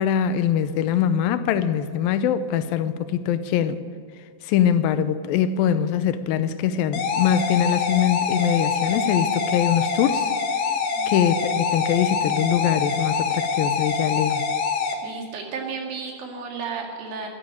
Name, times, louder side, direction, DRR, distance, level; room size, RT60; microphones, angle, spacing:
voice 1, 0.0-3.8 4.4-10.3 11.1-14.5, left 9 dB, 85° left, 2.5 m, -23 dB
sound 1, 6.9-14.9, left 5 dB, 65° left, 2.7 m, -25 dB
voice 2, 10.9-11.3 14.8-17.3, right 5 dB, 90° right, 4.0 m, -33 dB
14.5 x 9.0 x 9.1 m
omnidirectional pair, 4.1 m